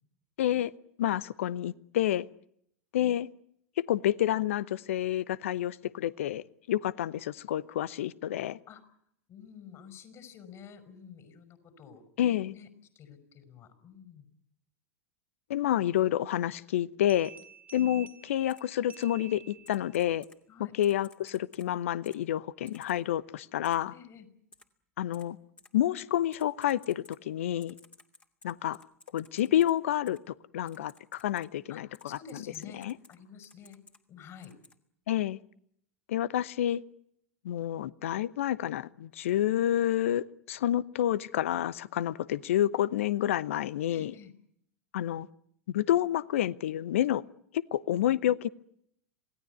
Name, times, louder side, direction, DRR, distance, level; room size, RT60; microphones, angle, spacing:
voice 1, 0.4-0.7 1.0-2.3 2.9-3.3 3.8-8.6 12.2-12.5 15.5-17.3 17.7-20.2 20.7-23.9 25.0-25.4 25.7-27.7 28.4-28.8 29.1-32.2 32.7-32.9 35.1-35.4 36.1-36.8 37.4-44.1 44.9-45.3 45.7-47.2 47.5-48.5, left 12 dB, 65° left, 20 dB, 0.9 m, -29 dB
voice 2, 9.3-12.0 12.5-12.7 13.0-14.2 20.5-20.7 23.9-24.3 31.7-33.8 34.1-34.5 43.9-44.3, left 7 dB, 40° left, 10 dB, 5.7 m, -50 dB
sound 1, 17.1-20.0, right 7 dB, 20° right, 2.4 m, -51 dB
Typing, 18.5-18.6 18.9-19.0 19.6-20.4 20.8-21.7 22.0-22.2 22.7-22.9 23.6-23.7 24.5-24.6 25.1-25.2 25.6-25.7 26.3-27.2 27.6-29.7 30.1-30.2 30.7-31.5 31.9-33.2 33.4-34.0 34.4-34.7, left 3 dB, 15° left, 2.5 m, -56 dB
27.5 x 18.0 x 9.5 m, 0.71 s
figure-of-eight pair, 90°, 8 cm